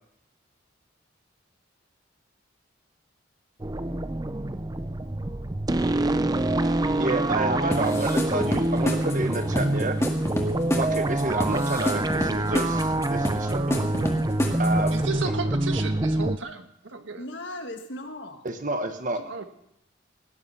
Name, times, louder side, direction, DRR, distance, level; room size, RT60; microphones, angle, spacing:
sound 1, 3.6-16.4, right 1 dB, 20° right, 0.6 m, -26 dB
voice 1, 7.0-10.0 10.7-13.9 14.6-14.9 18.4-19.3, right 2 dB, 40° right, 7 dB, 1.4 m, -29 dB
sound 2, 7.7-15.1, equal, 15° left, 1.9 m, -29 dB
voice 2, 14.9-17.2 19.3-19.4, right 4 dB, 80° right, 7 dB, 1.5 m, -33 dB
voice 3, 17.2-18.4 19.2-19.4, left 1 dB, 65° left, 5 dB, 1.9 m, -38 dB
17.5 x 10.5 x 5.7 m, 0.79 s
head